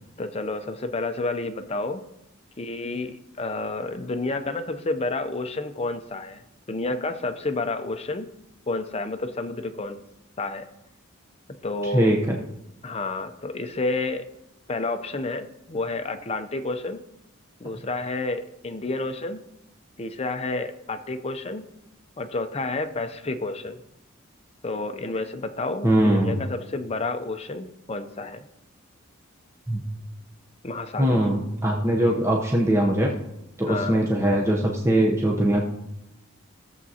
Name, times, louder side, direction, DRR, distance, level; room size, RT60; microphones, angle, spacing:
voice 1, 0.2-2.0 2.6-6.4 6.7-8.3 8.7-10.0 10.4-10.7 11.6-12.1 12.8-14.3 14.7-17.0 17.6-19.4 20.0-21.7 22.2-23.8 24.6-28.4 30.6-31.2 32.0-32.2 33.7-34.1, left 2 dB, 30° left, 8 dB, 0.5 m, -30 dB
voice 2, 11.9-12.4 25.8-26.4 29.7-29.8 31.0-33.1 33.6-35.7, right 1 dB, 15° right, -2 dB, 0.7 m, -21 dB
15.0 x 7.3 x 2.8 m, 0.87 s
head